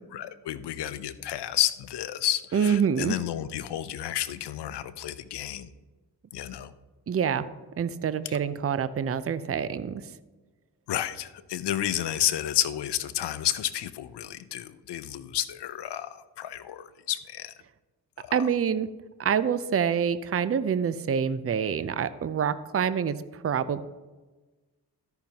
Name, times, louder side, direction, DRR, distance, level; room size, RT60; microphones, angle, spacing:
voice 1, 0.1-5.7 6.3-6.7 8.2-8.4 10.9-17.5 18.2-18.3, left 12 dB, 75° left, 14 dB, 0.7 m, -31 dB
voice 2, 2.5-3.2 7.1-7.4 7.8-10.0 18.3-18.9 19.2-23.2 23.4-23.8, right 7 dB, 35° right, 14 dB, 0.6 m, -26 dB
14.0 x 5.8 x 2.9 m, 1.2 s
supercardioid pair, 50°, 41 cm